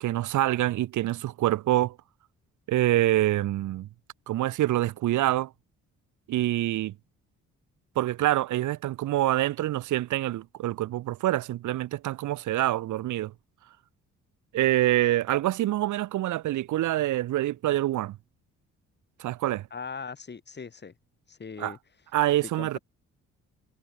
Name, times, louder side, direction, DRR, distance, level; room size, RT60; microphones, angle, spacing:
voice 1, 0.0-2.0 2.7-3.9 4.3-5.5 6.3-6.9 7.9-13.3 14.5-18.2 19.2-19.7 21.6-21.7 22.1-22.8, right 14 dB, 80° right, 1.3 m, -26 dB
voice 2, 19.7-20.9 21.3-21.8 22.5-22.8, left 5 dB, 35° left, 5.7 m, -39 dB
cardioid pair, 90°, 30 cm